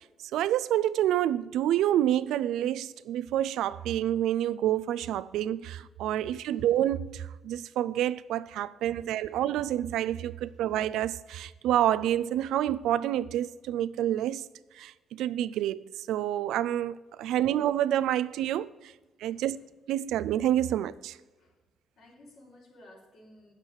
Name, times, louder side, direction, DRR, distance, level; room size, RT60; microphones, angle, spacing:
voice 1, 0.3-14.4 14.8-18.7 19.2-19.6 19.9-21.2, right 12 dB, 85° right, 0.4 m, -28 dB
voice 2, 22.0-23.5, left 1 dB, 70° left, 3.6 m, -55 dB
8.8 x 7.3 x 6.2 m
cardioid pair, 90°, 0 cm